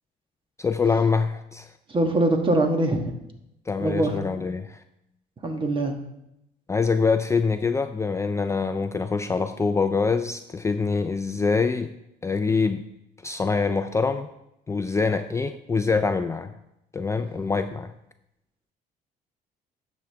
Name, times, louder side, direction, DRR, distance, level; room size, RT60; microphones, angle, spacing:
voice 1, 0.6-1.7 3.7-4.8 6.7-11.9 12.2-12.9 13.2-14.3 14.7-16.5 16.9-17.9, left 4 dB, 15° left, 8 dB, 0.4 m, -24 dB
voice 2, 1.9-3.0 3.8-4.1 5.4-6.0, right 2 dB, 30° right, 4 dB, 1.4 m, -22 dB
11.5 x 7.3 x 3.4 m, 0.85 s
cardioid pair, 110°, 17 cm